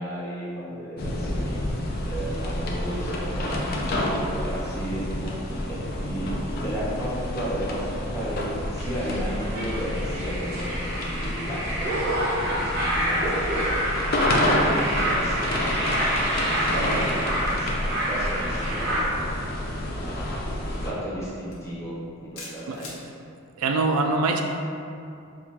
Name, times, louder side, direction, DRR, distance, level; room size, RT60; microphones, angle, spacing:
voice 1, 0.0-1.6 2.0-12.0 12.5-13.9 14.3-16.0 16.3-19.3 19.9-22.9, equal, 10° left, -9 dB, 0.7 m, -34 dB
sound 1, 1.0-20.9, left 1 dB, 45° left, 0.3 m, -29 dB
sound 2, 8.8-19.0, right 1 dB, 50° right, 0.6 m, -27 dB
sound 3, 21.5-21.7 22.4-23.0, left 3 dB, 75° left, 0.8 m, -40 dB
voice 2, 23.6-24.4, right 3 dB, 90° right, 3 dB, 0.3 m, -23 dB
4.5 x 2.3 x 2.8 m, 2.6 s
head